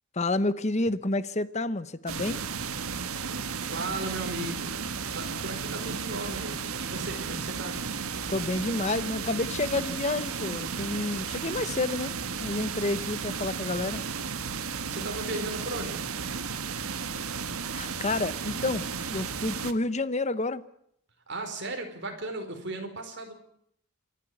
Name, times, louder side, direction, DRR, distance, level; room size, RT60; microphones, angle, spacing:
voice 1, 0.1-2.4 8.3-14.0 17.7-20.6, left 2 dB, 30° left, 15 dB, 0.9 m, -29 dB
sound 1, 2.1-19.7, right 5 dB, 75° right, 1.4 m, -34 dB
voice 2, 3.6-4.8 5.1-7.8 14.9-16.0 21.3-23.3, right 2 dB, 50° right, 4 dB, 4.5 m, -36 dB
27.5 x 11.5 x 9.5 m, 0.71 s
head